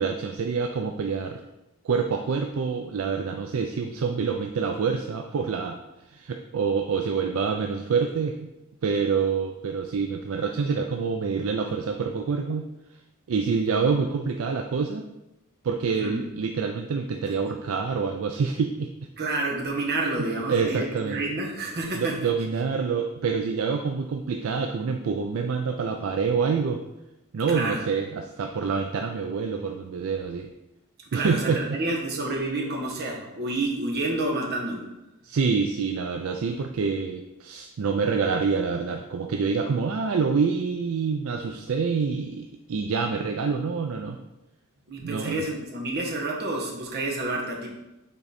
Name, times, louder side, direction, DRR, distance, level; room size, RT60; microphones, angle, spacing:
voice 1, 0.0-1.4 1.8-5.8 6.1-8.5 8.8-12.7 13.3-15.0 15.6-18.9 20.5-21.2 21.9-26.8 27.3-30.5 31.1-31.6 35.2-44.2 45.0-45.4, right 5 dB, 70° right, 5 dB, 0.4 m, -26 dB
voice 2, 15.9-16.3 17.5-17.6 19.2-22.3 27.5-27.8 31.1-34.9 44.9-47.7, right 2 dB, 50° right, 0 dB, 1.2 m, -29 dB
5.8 x 3.9 x 4.1 m, 0.97 s
head